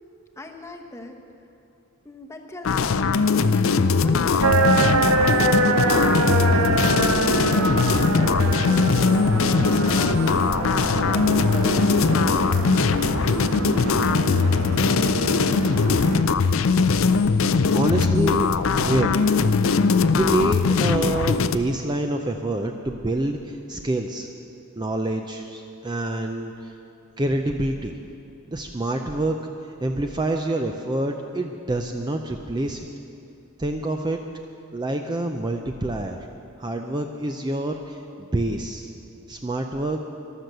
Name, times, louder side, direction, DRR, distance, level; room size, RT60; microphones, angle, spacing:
voice 1, 0.4-1.2 2.0-2.9 3.4-6.2 6.5-10.7 11.1-12.7, left 1 dB, 15° left, 3 dB, 0.9 m, -39 dB
sound 1, 2.6-21.6, left 4 dB, 60° left, 0.5 m, -20 dB
sound 2, 4.1-21.5, left 2 dB, 90° left, 1.4 m, -38 dB
sound 3, 4.4-16.2, right 3 dB, 70° right, 0.9 m, -25 dB
voice 2, 15.1-15.6 17.7-18.5 18.8-19.3 20.2-24.3 24.8-26.7 27.2-28.0 28.5-29.4 29.8-32.9 33.6-34.2 34.7-36.3 36.6-38.9 39.3-40.0, right 1 dB, 20° right, 4 dB, 0.5 m, -27 dB
14.0 x 12.0 x 6.7 m, 2.6 s
head